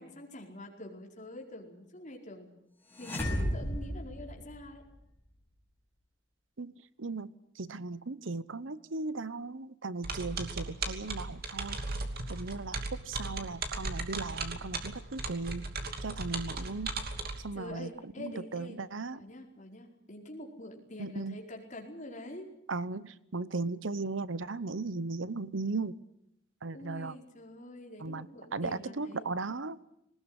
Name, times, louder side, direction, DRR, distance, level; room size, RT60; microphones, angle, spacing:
voice 1, 0.0-2.5 3.0-4.8 17.3-18.8 19.1-22.5 26.7-29.3, left 1 dB, 40° left, 1 dB, 4.8 m, -46 dB
sound 1, 2.9-5.0, equal, 10° left, 6.9 m, -34 dB
voice 2, 7.0-7.3 7.6-11.8 12.3-15.7 16.0-16.9 17.4-19.2 21.0-21.4 22.7-26.0 26.6-27.1 28.0-28.3 28.5-29.8, right 3 dB, 85° right, 16 dB, 1.0 m, -37 dB
sound 2, 10.0-17.4, right 3 dB, 50° right, 2.8 m, -37 dB
20.0 x 20.0 x 9.9 m, 0.78 s
head